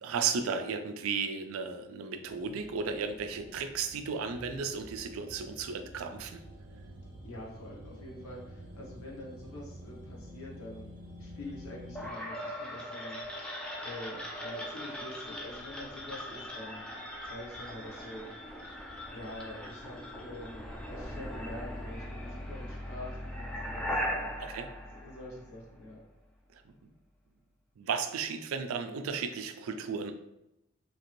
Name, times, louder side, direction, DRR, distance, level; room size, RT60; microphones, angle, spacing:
voice 1, 0.0-6.4 24.4-24.7 26.5-26.9 27.8-30.1, right 5 dB, 75° right, 8 dB, 0.3 m, -34 dB
sound 1, 2.2-12.1, equal, 40° right, 0.7 m, -49 dB
voice 2, 7.2-10.9 11.2-13.2 13.8-18.3 19.1-24.3 24.9-26.0, left 1 dB, 85° left, -3 dB, 1.0 m, -45 dB
sound 2, 11.9-25.8, equal, 5° left, 0.3 m, -39 dB
2.9 x 2.5 x 3.0 m, 0.89 s
head